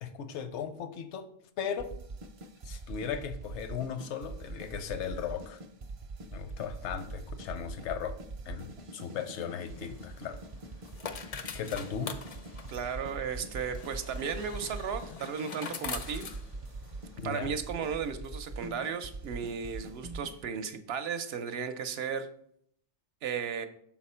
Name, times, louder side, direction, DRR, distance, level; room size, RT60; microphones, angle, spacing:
voice 1, 0.0-1.3 1.6-1.9 2.6-5.6 6.3-8.2 8.5-10.4 11.5-12.1 17.2-17.5, left 7 dB, 80° left, 10 dB, 0.9 m, -37 dB
sound 1, 1.8-20.5, right 2 dB, 50° right, 0.4 m, -43 dB
sound 2, 9.5-17.2, left 6 dB, 60° left, 0.4 m, -44 dB
voice 2, 12.7-16.3 17.2-22.3 23.2-23.7, right 6 dB, 70° right, 9 dB, 0.8 m, -35 dB
6.1 x 4.2 x 4.3 m, 0.68 s
omnidirectional pair, 1.2 m